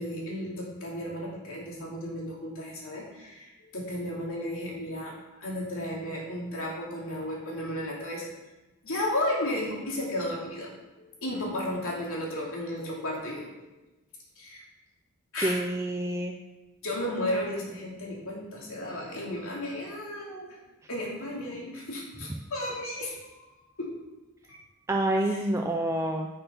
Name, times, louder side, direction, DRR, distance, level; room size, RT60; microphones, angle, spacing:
voice 1, 0.0-5.2 5.4-8.3 8.8-10.7 11.0-13.8 14.4-14.6 15.3-15.6 16.8-20.5 20.9-23.4 23.8-23.9 25.2-25.5, left 1 dB, 65° left, -3 dB, 2.9 m, -34 dB
voice 2, 15.4-16.3 24.9-26.3, right 1 dB, 15° right, 2 dB, 0.5 m, -27 dB
9.9 x 6.0 x 5.4 m, 1.1 s
head